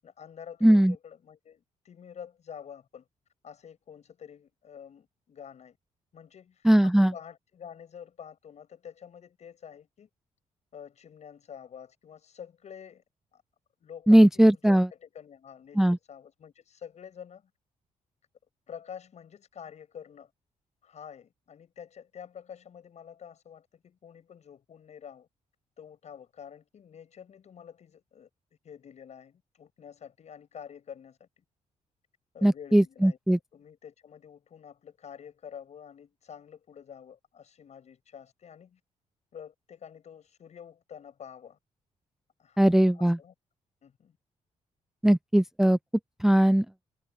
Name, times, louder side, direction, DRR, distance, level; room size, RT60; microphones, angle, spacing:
voice 1, 0.0-3.1 3.4-5.8 6.1-10.1 10.7-13.0 13.3-13.4 13.8-17.5 18.7-20.3 20.8-25.3 25.8-28.3 28.6-31.4 32.3-38.8 39.3-41.6 42.4-42.7 42.9-43.3 43.8-44.2, left 8 dB, 60° left, 7.7 m, -48 dB
voice 2, 0.6-0.9 6.6-7.1 14.1-14.9 15.8-16.0 32.4-33.4 42.6-43.2 45.0-45.8 46.2-46.7, right 1 dB, 5° right, 0.4 m, -19 dB
cardioid pair, 100°, 13 cm